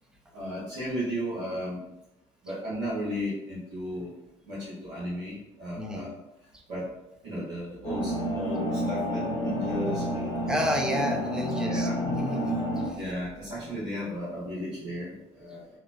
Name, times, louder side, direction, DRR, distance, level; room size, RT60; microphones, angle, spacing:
voice 1, 0.3-1.9 2.4-4.1 4.4-6.1 6.7-6.9 7.2-10.5 11.6-12.0 13.0-15.7, equal, 85° right, -11 dB, 1.0 m, -34 dB
voice 2, 5.8-6.1 6.5-6.6 10.5-13.0, equal, 5° right, 2 dB, 0.4 m, -31 dB
sound 1, 7.8-12.9, equal, 90° left, 0.7 m, -30 dB
2.8 x 2.0 x 2.5 m, 0.92 s
hypercardioid pair, 70°, 16 cm